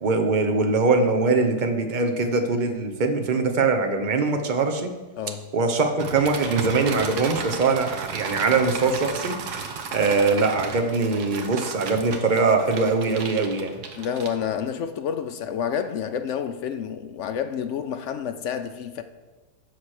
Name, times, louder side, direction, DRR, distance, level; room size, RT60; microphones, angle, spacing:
voice 1, 0.0-4.9 5.5-9.3 9.9-13.7, right 4 dB, 40° right, 0.7 m, -22 dB
sound 1, 6.0-14.7, right 5 dB, 70° right, 1.5 m, -34 dB
voice 2, 14.0-19.0, left 8 dB, 70° left, 0.7 m, -29 dB
8.2 x 6.0 x 6.4 m
omnidirectional pair, 1.8 m